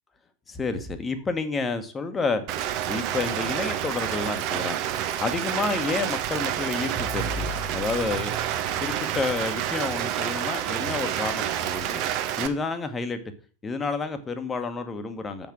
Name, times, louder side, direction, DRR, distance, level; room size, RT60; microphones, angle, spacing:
voice 1, 0.5-2.4 2.9-4.8 5.2-7.4 7.7-8.4 8.8-12.0 12.4-13.2 13.6-15.5, left 4 dB, 15° left, 8 dB, 1.2 m, -29 dB
Rain, 2.5-12.5, right 11 dB, 40° right, 0.9 m, -29 dB
sound 1, 6.9-10.0, right 1 dB, 20° right, 2.7 m, -37 dB
7.0 x 6.0 x 5.9 m, 0.39 s
figure-of-eight pair, 90°, 0 cm